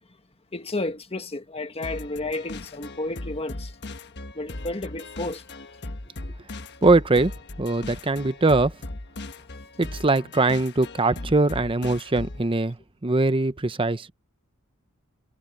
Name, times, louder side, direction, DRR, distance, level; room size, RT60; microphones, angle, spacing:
voice 1, 0.5-3.7 4.3-5.4, left 2 dB, 25° left, 1.5 m, -32 dB
sound 1, 1.8-12.5, left 2 dB, 55° left, 1.3 m, -38 dB
voice 2, 6.8-7.3 7.6-8.7 9.8-12.8 13.0-14.1, right 2 dB, 25° right, 0.8 m, -21 dB
head